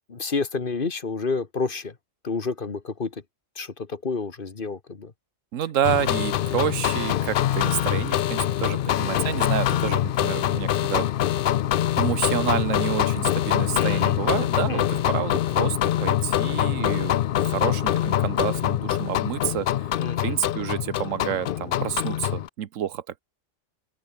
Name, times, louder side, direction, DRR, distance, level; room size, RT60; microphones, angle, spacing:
voice 1, 0.1-2.0 2.2-3.2 3.5-5.1 9.0-9.5 13.7-14.2 14.7-15.0 20.0-20.4, left 4 dB, 45° left, 1.7 m, -30 dB
voice 2, 5.5-11.1 12.0-19.9 20.2-23.0, right 10 dB, 90° right, 1.3 m, -29 dB
sound 1, 5.8-22.5, left 11 dB, 60° left, 0.6 m, -24 dB
open air
omnidirectional pair, 1.3 m